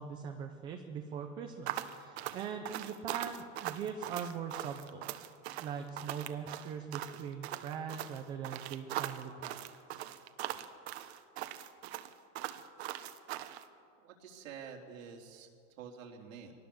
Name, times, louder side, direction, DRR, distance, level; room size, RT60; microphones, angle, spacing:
voice 1, 0.0-5.1 5.6-9.6 9.9-10.0, right 7 dB, 15° right, 5 dB, 0.4 m, -41 dB
sound 1, 1.7-13.6, right 13 dB, 55° right, 1.2 m, -40 dB
voice 2, 14.0-15.5 15.8-16.5, right 6 dB, 85° right, 0 dB, 4.0 m, -48 dB
23.0 x 19.0 x 7.2 m, 2.3 s
supercardioid pair, 175°, 38 cm